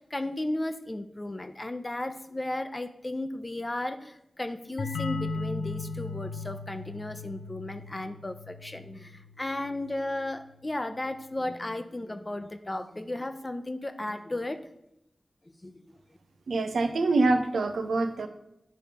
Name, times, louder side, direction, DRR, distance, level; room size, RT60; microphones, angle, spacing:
voice 1, 0.0-14.7 15.6-15.8, left 1 dB, 35° left, 9 dB, 0.8 m, -34 dB
sound 1, 4.8-10.2, left 4 dB, 85° left, 0.4 m, -37 dB
voice 2, 16.5-18.3, right 3 dB, 90° right, 6 dB, 0.7 m, -25 dB
9.9 x 3.4 x 4.9 m, 0.83 s
cardioid pair, 40°, 0 cm